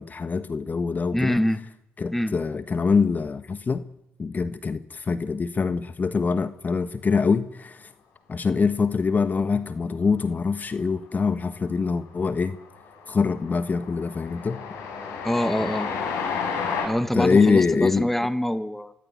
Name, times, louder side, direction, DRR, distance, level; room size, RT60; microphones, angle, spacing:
voice 1, 0.0-1.4 2.0-3.8 4.2-7.9 8.3-12.6 13.1-14.6 17.1-18.1, left 5 dB, 40° left, 12 dB, 1.3 m, -24 dB
voice 2, 1.1-1.6 2.1-2.4 15.2-15.9 16.8-18.9, equal, 5° left, 13 dB, 1.6 m, -25 dB
Train, 11.2-11.7 12.0-16.9, left 6 dB, 80° left, 6.0 m, -32 dB
24.0 x 16.0 x 9.7 m, 0.81 s
supercardioid pair, 60°, 5 cm